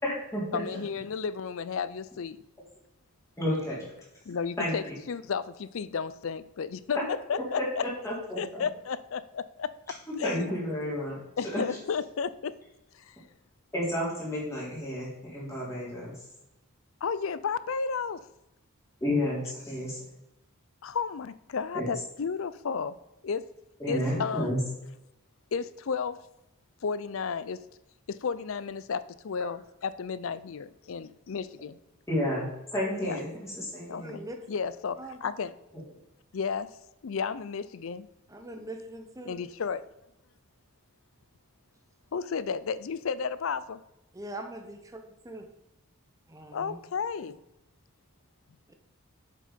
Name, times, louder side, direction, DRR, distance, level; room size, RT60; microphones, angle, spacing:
voice 1, 0.0-0.6 3.4-3.9 4.6-4.9 8.0-8.6 10.2-11.6 13.7-16.1 19.0-20.0 21.7-21.9 23.8-24.6 32.1-34.2, left 1 dB, 15° left, -7 dB, 3.5 m, -31 dB
voice 2, 0.5-2.4 4.3-7.9 8.4-9.7 10.2-10.5 11.4-12.5 12.9-13.2 17.0-18.2 20.8-23.0 23.2-23.5 23.9-24.5 25.5-26.2 26.8-27.6 28.1-31.8 33.0-33.2 33.9-34.0 34.5-35.5 36.3-36.7 37.0-38.1 39.2-39.8 42.1-43.8 46.5-47.4, left 6 dB, 65° left, 16 dB, 0.4 m, -33 dB
voice 3, 33.8-34.4 35.0-35.3 38.3-39.3 44.2-44.8 45.2-45.5 46.3-46.8 48.7-48.8, right 1 dB, 15° right, 5 dB, 0.9 m, -42 dB
7.5 x 6.6 x 5.1 m, 0.91 s
head